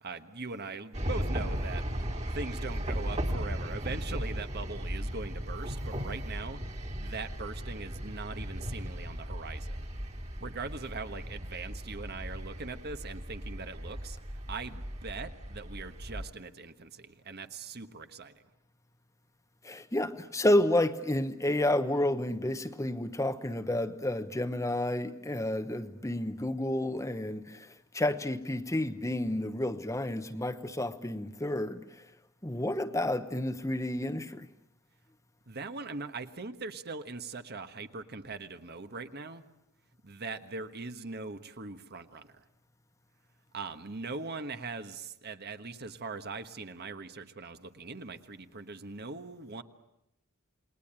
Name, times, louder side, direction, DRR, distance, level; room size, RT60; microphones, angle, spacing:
voice 1, 0.0-9.9 10.4-14.2 14.5-18.4 35.5-39.4 40.0-42.4 43.5-49.6, right 3 dB, 45° right, 1.3 m, -41 dB
sound 1, 0.9-16.3, equal, 30° right, 2.2 m, -36 dB
voice 2, 19.6-32.0 32.4-34.5, left 1 dB, 15° left, 1.0 m, -30 dB
28.5 x 20.5 x 8.9 m
head